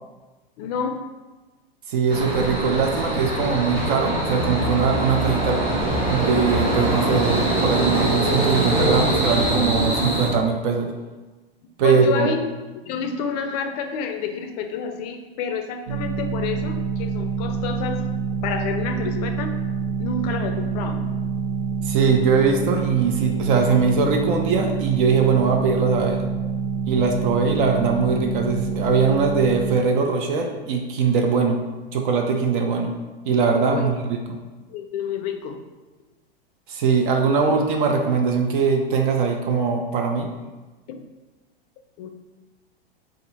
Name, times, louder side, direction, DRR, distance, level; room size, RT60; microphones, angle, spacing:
voice 1, 0.6-1.0 11.8-12.5 12.8-18.0 18.4-19.5 20.0-21.1 33.7-33.9 34.7-35.6 40.9-41.0 42.0-42.1, left 6 dB, 45° left, 6 dB, 0.4 m, -29 dB
voice 2, 1.9-5.6 6.1-10.9 11.8-12.3 21.8-26.2 26.9-31.6 31.9-32.9 33.2-34.4 36.7-40.3, right 5 dB, 55° right, 3 dB, 0.5 m, -21 dB
sound 1, 2.1-10.3, right 1 dB, 75° right, 1.2 m, -23 dB
sound 2, 15.9-29.8, right 5 dB, 40° right, 1.1 m, -26 dB
2.6 x 2.4 x 4.0 m, 1.2 s
hypercardioid pair, 120°, 30 cm